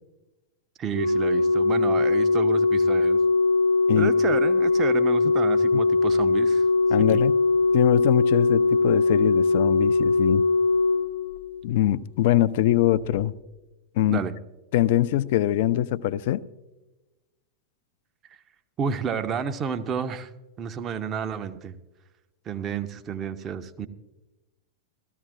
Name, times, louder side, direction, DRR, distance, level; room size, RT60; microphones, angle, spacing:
voice 1, 0.8-3.2 4.0-6.6 7.1-7.2 14.1-14.3 18.8-20.3 20.6-21.8 22.5-23.9, right 7 dB, 30° right, 0.7 m, -31 dB
Organ, 0.9-11.8 13.0-13.1, left 3 dB, 85° right, 1.0 m, -21 dB
voice 2, 6.9-7.4 7.7-10.4 11.6-13.3 14.0-14.2 14.7-16.4, left 13 dB, 50° left, 0.4 m, -23 dB
17.0 x 14.0 x 2.6 m
figure-of-eight pair, 90°, 0 cm